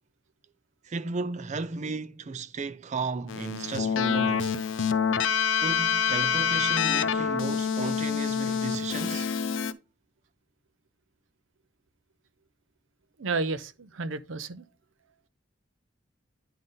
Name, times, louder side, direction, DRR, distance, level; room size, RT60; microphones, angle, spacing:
voice 1, 0.8-4.6 5.6-9.3, right 4 dB, 40° right, 0.4 m, -34 dB
Keyboard (musical), 3.3-9.7, left 7 dB, 75° left, 0.5 m, -26 dB
voice 2, 13.2-14.6, right 3 dB, 90° right, 0.6 m, -31 dB
10.5 x 3.8 x 3.8 m
head